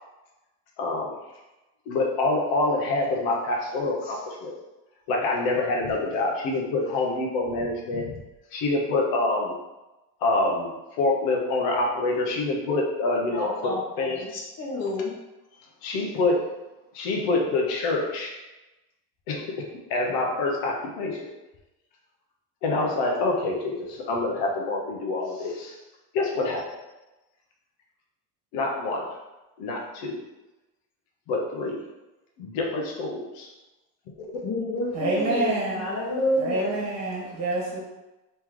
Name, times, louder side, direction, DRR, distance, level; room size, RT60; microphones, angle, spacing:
voice 1, 0.8-1.1 1.9-4.5 5.1-8.1 8.5-9.5 10.2-10.7 11.0-14.2 15.8-16.4 16.9-18.3 19.3-21.3 22.6-25.8 26.1-26.6 28.5-29.0 29.6-30.2 31.3-31.8 32.4-33.5, left 2 dB, 80° left, -1 dB, 1.0 m, -26 dB
voice 2, 13.3-15.1 34.4-36.8, left 2 dB, 45° left, -1 dB, 1.1 m, -29 dB
voice 3, 34.9-35.9 36.4-37.8, right 2 dB, 45° right, -3 dB, 1.3 m, -27 dB
3.3 x 3.0 x 3.7 m, 1.0 s
cardioid pair, 115°, 36 cm